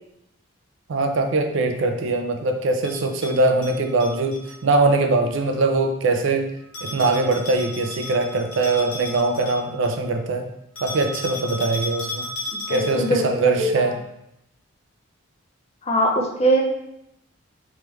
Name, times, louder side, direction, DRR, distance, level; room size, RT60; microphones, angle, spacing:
voice 1, 0.9-6.5 6.8-10.5 10.8-12.3 12.7-14.0, right 3 dB, 60° right, 5 dB, 0.4 m, -22 dB
Bell, 2.8-4.6 6.7-10.0 10.8-13.2, left 1 dB, 65° left, 1.4 m, -34 dB
voice 2, 12.7-13.7 15.8-16.6, right 1 dB, 30° left, 1 dB, 0.5 m, -21 dB
3.5 x 3.2 x 3.0 m, 0.81 s
head